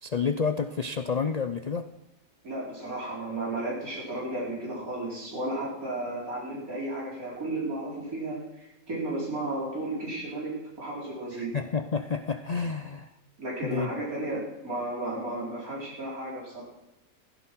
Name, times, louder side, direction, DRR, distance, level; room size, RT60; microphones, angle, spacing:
voice 1, 0.0-1.9 11.3-13.1 13.6-13.9, left 5 dB, 80° left, 10 dB, 0.3 m, -29 dB
voice 2, 2.4-11.6 13.4-16.6, right 2 dB, 75° right, -5 dB, 4.8 m, -33 dB
16.5 x 15.0 x 4.6 m, 1.0 s
omnidirectional pair, 1.5 m